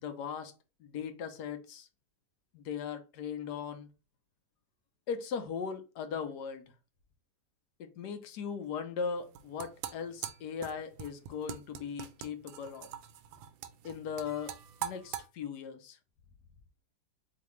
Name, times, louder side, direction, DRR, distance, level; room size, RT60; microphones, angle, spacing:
voice 1, 0.0-0.5 0.8-1.9 2.5-3.9 5.1-6.7 7.8-12.9 13.8-14.6 14.8-16.0, left 6 dB, 70° left, 1.1 m, -38 dB
sound 1, 9.2-15.3, right 10 dB, 85° right, 1.4 m, -43 dB
4.1 x 3.3 x 3.1 m
omnidirectional pair, 2.1 m